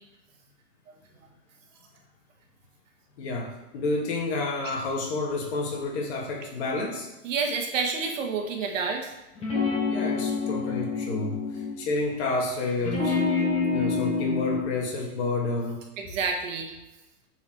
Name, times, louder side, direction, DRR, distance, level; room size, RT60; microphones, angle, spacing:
voice 1, 3.2-7.1 9.9-13.2 13.7-15.8, left 2 dB, 45° left, -1 dB, 2.3 m, -30 dB
voice 2, 7.2-9.1 16.0-16.7, right 5 dB, 55° right, 3 dB, 1.7 m, -29 dB
sound 1, 9.4-11.8 12.8-14.6, left 4 dB, 15° left, 1.7 m, -27 dB
9.0 x 4.8 x 4.7 m, 1.0 s
hypercardioid pair, 155°, 46 cm